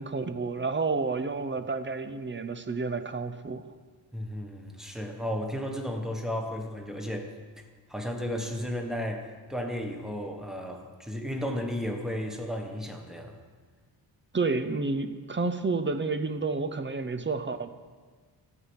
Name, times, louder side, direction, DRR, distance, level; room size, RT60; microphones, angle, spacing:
voice 1, 0.0-3.6 14.3-17.7, right 4 dB, 30° right, 9 dB, 0.6 m, -30 dB
voice 2, 4.1-13.4, equal, ahead, 2 dB, 1.1 m, -34 dB
13.5 x 5.7 x 7.8 m, 1.5 s
wide cardioid pair, 175°, 42 cm